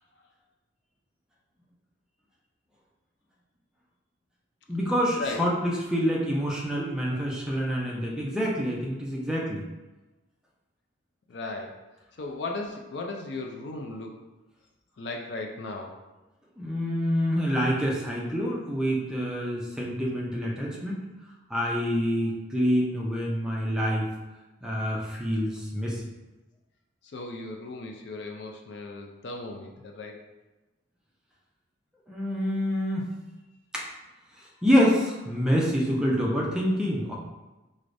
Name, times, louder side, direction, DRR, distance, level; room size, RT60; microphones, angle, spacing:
voice 1, 4.7-9.6 16.6-21.0 21.5-24.1 24.6-26.0 32.1-33.1 33.7-33.9 34.6-37.2, equal, 5° right, -4 dB, 0.4 m, -26 dB
voice 2, 7.1-7.4 11.3-11.8 12.2-14.2 15.0-16.0 27.0-30.1, left 2 dB, 60° left, 2 dB, 0.4 m, -36 dB
4.7 x 2.1 x 2.5 m, 1.1 s
head